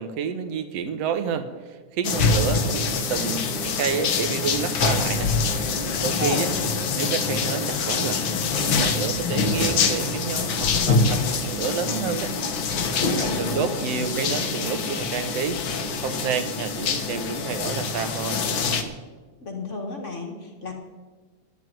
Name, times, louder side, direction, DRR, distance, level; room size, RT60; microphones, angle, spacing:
voice 1, 0.0-5.3 6.0-6.5 7.0-8.2 8.6-12.3 12.9-18.4, right 6 dB, 65° right, 10 dB, 2.0 m, -29 dB
sound 1, 2.0-18.8, left 4 dB, 60° left, 1.5 m, -25 dB
voice 2, 6.0-6.4 13.0-14.2 19.4-20.7, left 3 dB, 35° left, 2 dB, 1.4 m, -33 dB
11.0 x 10.0 x 9.2 m, 1.3 s
omnidirectional pair, 3.3 m